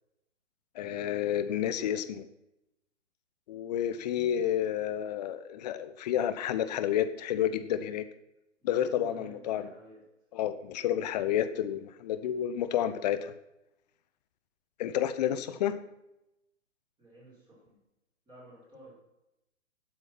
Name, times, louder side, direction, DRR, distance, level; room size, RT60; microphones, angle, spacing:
voice 1, 0.7-2.3 3.5-8.0 8.6-9.6 10.3-13.3 14.8-15.7, left 10 dB, 35° left, 12 dB, 1.0 m, -30 dB
voice 2, 1.5-1.9 4.1-4.5 8.6-10.0 15.3-15.6 17.0-17.8 18.3-18.9, right 1 dB, 10° right, -7 dB, 5.7 m, -53 dB
16.5 x 7.8 x 6.0 m, 0.88 s
figure-of-eight pair, 130°, 37 cm